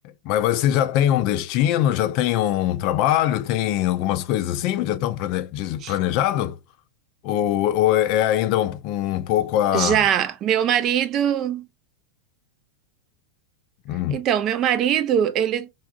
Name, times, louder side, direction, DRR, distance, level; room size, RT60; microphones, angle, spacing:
voice 1, 0.2-6.6 7.2-10.0 13.9-14.2, left 12 dB, 50° left, 0.3 m, -22 dB
voice 2, 9.7-11.6 14.1-15.7, right 9 dB, 40° right, 0.4 m, -22 dB
3.3 x 2.3 x 2.3 m
hypercardioid pair, 95°, 0 cm